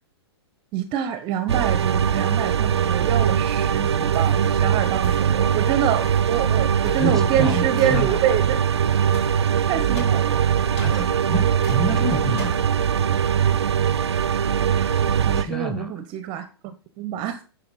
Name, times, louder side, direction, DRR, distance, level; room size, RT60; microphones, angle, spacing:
voice 1, 0.7-8.6 9.7-10.4 10.9-11.1 14.7-17.4, right 9 dB, 35° right, 0.9 m, -26 dB
sound 1, 1.5-15.4, right 8 dB, 80° right, 0.6 m, -21 dB
sound 2, 4.1-4.5 5.0-5.4 6.0-6.3 6.8-7.1 7.8-8.0 9.1-9.4 10.0-10.3 10.8-11.1 11.6-11.8 12.4-12.7, left 2 dB, 70° left, 3.8 m, -40 dB
voice 2, 7.0-8.2 10.8-12.6 15.3-15.9, equal, ahead, 1.6 m, -28 dB
11.5 x 4.4 x 4.2 m
hypercardioid pair, 110°, 14 cm